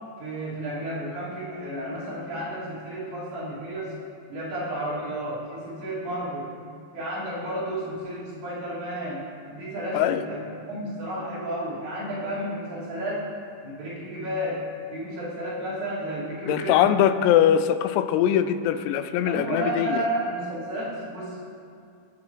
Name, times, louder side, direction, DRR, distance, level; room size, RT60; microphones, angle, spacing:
voice 1, 0.2-3.9 4.3-6.5 6.9-10.4 10.7-13.3 13.6-14.6 14.9-17.0 19.3-21.5, right 1 dB, 60° right, -9 dB, 4.8 m, -32 dB
voice 2, 16.5-20.1, left 10 dB, 85° left, 11 dB, 3.2 m, -22 dB
19.5 x 8.6 x 3.2 m, 2.5 s
omnidirectional pair, 6.0 m